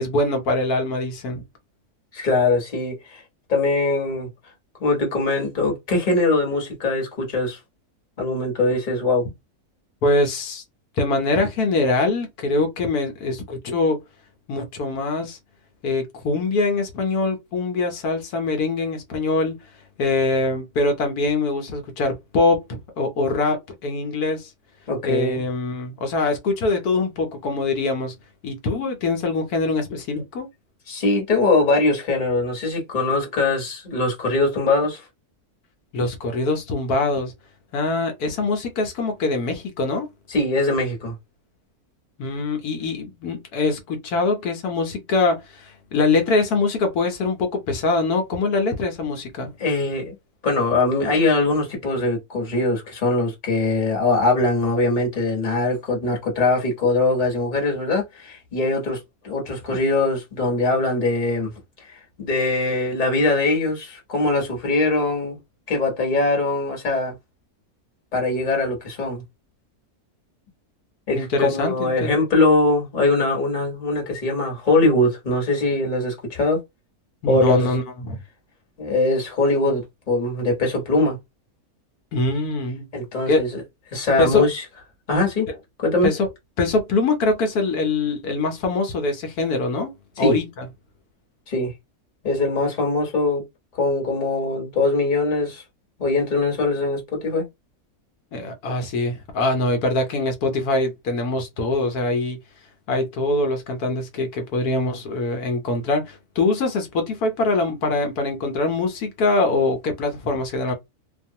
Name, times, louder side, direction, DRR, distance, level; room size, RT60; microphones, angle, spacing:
voice 1, 0.0-1.4 10.0-10.6 11.0-14.0 14.5-15.4 15.8-19.6 20.0-24.5 25.0-28.2 28.4-30.5 35.9-37.3 37.7-40.1 42.2-49.5 71.1-72.1 77.2-78.2 82.1-82.9 83.3-83.4 84.2-84.5 85.5-85.6 86.0-86.3 86.6-89.9 90.2-90.7 98.3-102.4 102.9-110.7, left 3 dB, 80° left, 1.2 m, -23 dB
voice 2, 2.1-3.2 3.5-4.3 4.8-7.6 8.2-9.2 24.9-25.4 30.9-35.0 40.3-41.1 49.6-50.1 50.4-61.5 61.8-65.4 65.7-67.1 68.1-69.2 71.1-76.6 77.3-77.7 78.8-81.2 82.9-83.6 83.9-84.6 85.1-85.5 85.8-86.1 90.2-90.3 91.5-91.7 92.2-93.4 93.8-95.6 96.0-97.4, left 2 dB, 35° left, 1.2 m, -22 dB
2.7 x 2.3 x 2.7 m
omnidirectional pair, 1.6 m